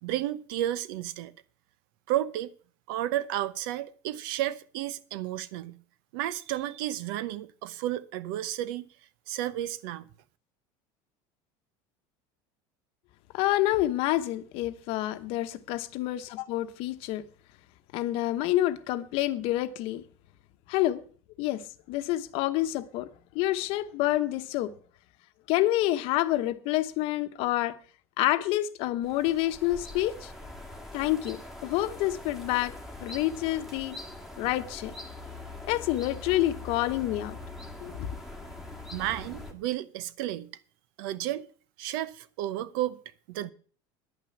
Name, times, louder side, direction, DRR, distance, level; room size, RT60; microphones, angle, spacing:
voice 1, 0.0-1.3 2.1-2.5 2.9-5.8 6.1-8.9 9.3-10.1 38.9-40.5 41.0-41.5 41.8-43.0 43.3-43.5, right 13 dB, 75° right, 0.9 m, -32 dB
voice 2, 13.3-17.2 17.9-20.0 20.7-21.0 21.4-21.6 21.9-23.1 23.3-24.7 25.5-27.8 28.2-30.3 30.9-32.7 33.0-34.0 34.4-34.9 35.6-37.4 37.8-38.1, left 15 dB, 55° left, 1.0 m, -28 dB
sound 1, 29.0-39.5, left 2 dB, ahead, 1.7 m, -43 dB
10.5 x 9.2 x 7.1 m
cardioid pair, 165°, 12 cm